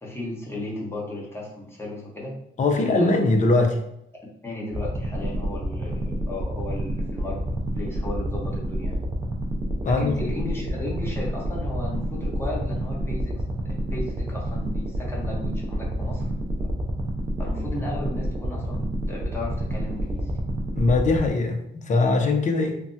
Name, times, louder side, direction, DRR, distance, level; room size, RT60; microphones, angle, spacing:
voice 1, 0.0-2.4 2.7-3.3 4.4-7.4 7.7-9.0 9.8-16.2 17.4-20.3, left 1 dB, 10° left, -4 dB, 1.0 m, -35 dB
voice 2, 2.6-3.8 9.8-10.3 20.7-22.8, left 3 dB, 40° left, 4 dB, 0.6 m, -21 dB
sound 1, 4.7-21.3, right 1 dB, 20° right, 0.5 m, -29 dB
3.3 x 2.1 x 2.7 m, 0.76 s
cardioid pair, 90°, 20 cm